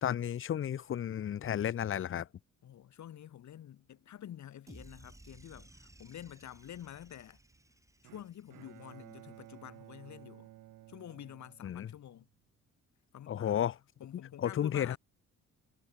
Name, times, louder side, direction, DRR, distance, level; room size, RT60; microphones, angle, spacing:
voice 1, 0.0-2.3 11.6-11.9 13.3-13.8 14.4-15.0, left 10 dB, 45° left, 0.7 m, -32 dB
voice 2, 2.6-7.4 8.0-10.5 10.9-12.3 13.1-13.7 14.0-15.0, left 11 dB, 70° left, 4.2 m, -49 dB
sound 1, 4.7-9.0, right 2 dB, 10° right, 2.1 m, -57 dB
Bowed string instrument, 8.0-12.3, right 15 dB, 85° right, 4.5 m, -55 dB
cardioid pair, 90°, 30 cm